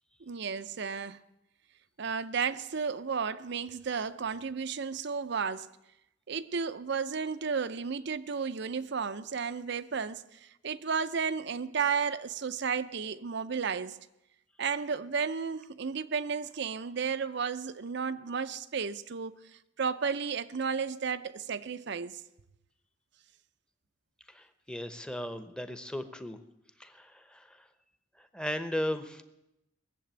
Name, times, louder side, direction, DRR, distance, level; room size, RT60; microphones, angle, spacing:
voice 1, 0.2-1.2 2.0-5.7 6.3-14.0 14.6-22.2, right 6 dB, 60° right, 0.6 m, -33 dB
voice 2, 24.3-26.4 26.8-27.7 28.2-29.2, left 1 dB, 5° left, 0.9 m, -36 dB
19.5 x 7.6 x 9.0 m
head